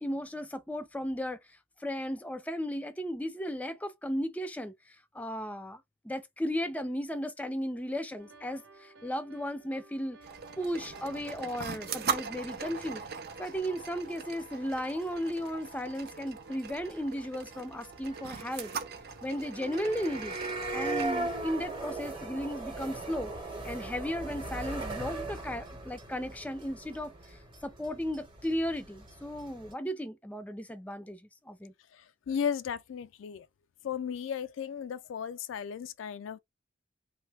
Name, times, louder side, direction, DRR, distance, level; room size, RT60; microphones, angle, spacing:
voice 1, 0.0-1.4 1.8-4.7 5.1-10.2 10.6-13.0 13.4-18.7 19.2-20.3 20.7-23.3 23.6-27.4 27.6-31.2 31.5-31.7, equal, 10° left, 0.5 m, -35 dB
sound 1, 8.2-25.2, right 1 dB, 70° right, 0.9 m, -56 dB
sound 2, 10.2-21.1, right 6 dB, 55° right, 0.5 m, -40 dB
sound 3, 10.7-10.8 11.0-11.1 11.3-11.4 11.6-11.7 11.9-12.0 12.2-12.3 12.5-12.8 13.1-13.2 13.4-13.5 13.8-14.0 14.4-14.5 14.7-15.4 15.6-16.0 16.3-16.4 16.6-16.7 16.9-17.0 17.2-17.3 17.5-17.6 17.8-29.7, right 2 dB, 25° right, 1.0 m, -39 dB
voice 2, 31.9-33.5 33.8-36.4, left 7 dB, 80° left, 0.3 m, -35 dB
3.1 x 2.1 x 3.3 m
head